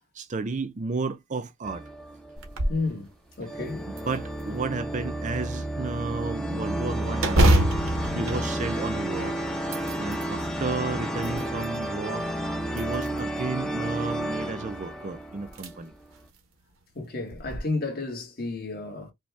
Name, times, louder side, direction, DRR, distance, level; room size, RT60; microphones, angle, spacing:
voice 1, 0.1-1.8 4.1-7.7 8.2-9.4 10.0-12.3 12.7-15.9, right 3 dB, 35° right, 0.5 m, -32 dB
sound 1, 1.6-2.8 3.5-16.1, right 1 dB, 5° left, 0.7 m, -32 dB
sound 2, 2.4-2.9 3.3-3.4 4.0-4.8 7.2-9.2 9.6-10.3 10.9-11.8 12.7-13.4 14.8-14.9 15.5-15.7 16.2-16.3 17.3-17.6, right 1 dB, 75° right, 1.1 m, -25 dB
voice 2, 2.7-3.9 8.1-8.3 16.9-19.1, left 3 dB, 45° left, 1.4 m, -32 dB
5.2 x 2.3 x 3.3 m
head